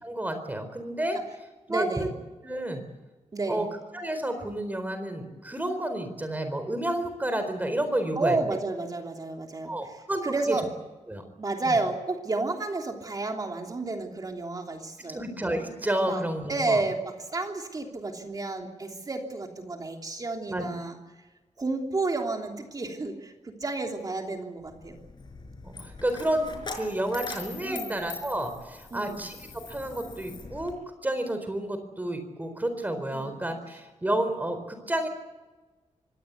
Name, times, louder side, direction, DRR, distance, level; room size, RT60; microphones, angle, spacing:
voice 1, 0.0-1.2 1.7-2.1 2.4-2.8 3.5-3.7 3.9-8.4 9.6-10.6 11.1-11.2 11.6-11.8 15.1-16.8 20.5-20.7 25.6-29.4 29.7-30.7 31.0-35.1, right 1 dB, 15° right, 8 dB, 4.3 m, -30 dB
voice 2, 1.7-2.1 3.3-3.6 8.2-9.7 10.2-10.7 11.4-15.2 16.0-16.2 16.5-21.0 21.6-25.0 27.6-28.0 28.9-29.2 33.1-33.3, right 3 dB, 30° right, 3 dB, 3.1 m, -31 dB
Coin (dropping), 24.6-30.7, left 3 dB, 40° left, 5.2 m, -42 dB
25.0 x 18.0 x 8.3 m, 1.2 s
wide cardioid pair, 155°, 12 cm